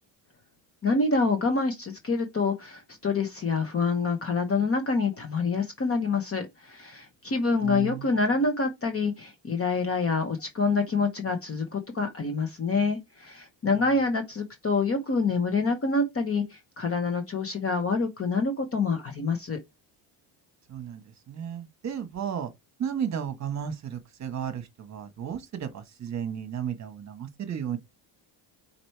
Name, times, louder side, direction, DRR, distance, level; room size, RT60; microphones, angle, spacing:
voice 1, 0.8-19.6, left 4 dB, 25° left, 1.0 m, -27 dB
voice 2, 7.6-8.1 20.7-22.5 22.8-27.8, right 8 dB, 35° right, 1.2 m, -34 dB
4.9 x 4.3 x 4.5 m
cardioid pair, 145°, 50 cm